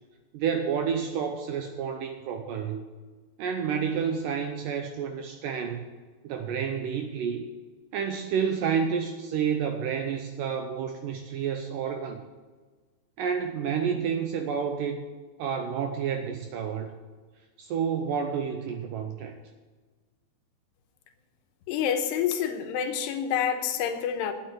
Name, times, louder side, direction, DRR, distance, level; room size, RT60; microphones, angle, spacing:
voice 1, 0.3-2.8 3.4-5.8 6.2-7.4 7.9-12.2 13.2-15.0 15.4-16.9 17.6-19.3, right 7 dB, 80° right, 5 dB, 2.0 m, -29 dB
voice 2, 21.7-24.3, left 8 dB, 90° left, 6 dB, 3.1 m, -28 dB
9.3 x 7.8 x 9.2 m, 1.4 s
omnidirectional pair, 4.7 m